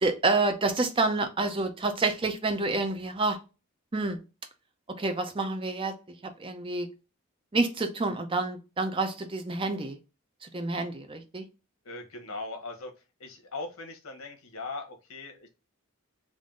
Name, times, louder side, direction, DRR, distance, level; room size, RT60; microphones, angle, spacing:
voice 1, 0.0-3.4 3.9-4.2 5.0-5.9 6.4-6.9 7.5-10.0 10.4-11.4, right 3 dB, 25° right, 0.5 m, -28 dB
voice 2, 11.8-12.9 13.2-15.5, left 3 dB, 85° left, 1.1 m, -39 dB
3.7 x 2.6 x 3.7 m
head